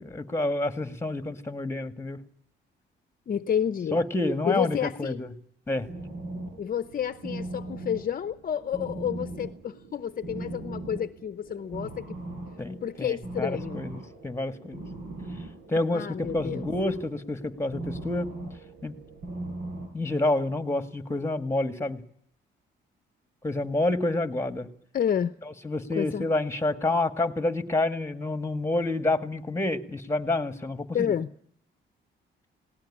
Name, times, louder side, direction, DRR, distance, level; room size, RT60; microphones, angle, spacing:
voice 1, 0.0-2.2 3.9-5.3 5.7-5.9 12.6-14.8 15.7-18.3 18.8-18.9 19.9-22.0 23.4-24.7 25.6-31.1, left 2 dB, 15° left, 2.0 m, -28 dB
voice 2, 3.3-4.0 4.5-5.2 6.6-12.2 12.8-13.8 15.9-16.6 24.9-25.3 25.9-26.3 30.9-31.3, left 8 dB, 45° left, 0.8 m, -30 dB
sound 1, 5.9-19.9, right 2 dB, 70° right, 7.2 m, -39 dB
19.0 x 18.5 x 10.0 m
cardioid pair, 90°, 20 cm